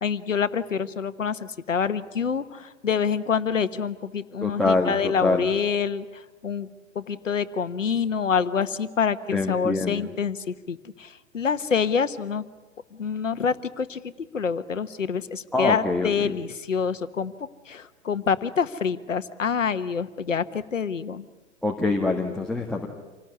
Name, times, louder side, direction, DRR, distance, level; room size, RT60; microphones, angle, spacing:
voice 1, 0.0-6.7 6.9-12.4 13.0-17.3 17.7-21.3, left 6 dB, 80° left, 13 dB, 1.4 m, -27 dB
voice 2, 4.4-5.5 9.3-10.1 15.5-16.4 21.6-22.9, left 3 dB, ahead, 2 dB, 1.8 m, -25 dB
27.5 x 19.0 x 9.6 m, 1.2 s
figure-of-eight pair, 115°, 38 cm